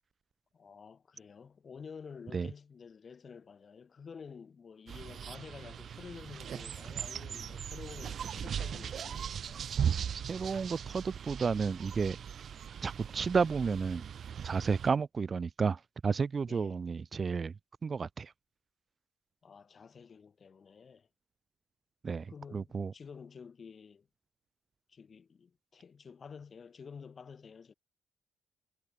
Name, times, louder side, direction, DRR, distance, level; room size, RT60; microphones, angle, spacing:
voice 1, 0.5-9.7 16.5-16.8 19.4-21.1 22.1-24.1 24.9-27.7, left 6 dB, 45° left, 3.8 m, -50 dB
sound 1, 4.9-14.9, right 8 dB, 55° right, 1.9 m, -38 dB
voice 2, 10.3-12.2 12.8-14.0 14.4-17.5 17.8-18.3 22.0-22.3 22.5-22.9, right 5 dB, 40° right, 0.3 m, -31 dB
cardioid pair, 90°, 0 cm